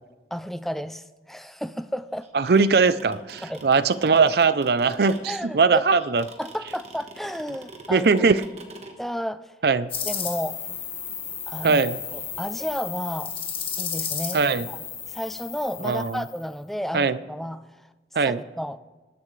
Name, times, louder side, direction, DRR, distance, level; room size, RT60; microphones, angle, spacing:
voice 1, 0.3-2.3 3.4-3.7 5.3-5.8 6.4-8.1 9.0-9.5 10.1-10.6 11.5-11.8 12.1-13.4 13.8-14.8 15.1-17.9 18.2-18.8, equal, ahead, 12 dB, 0.3 m, -32 dB
sound 1, 2.2-8.9, right 3 dB, 40° right, 1.3 m, -43 dB
voice 2, 2.3-6.2 7.9-8.4 9.6-9.9 11.6-12.0 14.3-14.7 15.8-16.2 16.9-17.2 18.1-18.4, right 4 dB, 65° right, 15 dB, 0.5 m, -20 dB
sound 2, 9.9-16.4, left 7 dB, 30° left, 1.5 m, -33 dB
20.0 x 11.0 x 3.3 m, 1.2 s
head